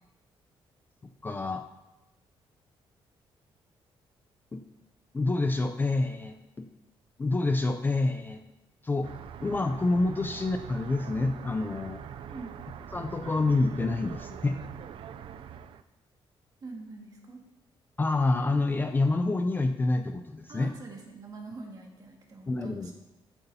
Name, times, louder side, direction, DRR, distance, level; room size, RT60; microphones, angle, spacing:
voice 1, 1.2-1.6 4.5-4.6 5.1-6.7 7.2-8.4 8.8-9.1 9.4-12.0 12.9-14.6 18.0-20.7 22.5-22.9, left 2 dB, 20° left, 6 dB, 0.5 m, -27 dB
sound 1, 9.0-15.8, right 8 dB, 65° right, 0.4 m, -43 dB
voice 2, 16.6-17.4 20.5-22.9, right 3 dB, 40° right, 0 dB, 1.9 m, -44 dB
14.0 x 7.9 x 2.8 m, 1.0 s
cardioid pair, 140°, 10 cm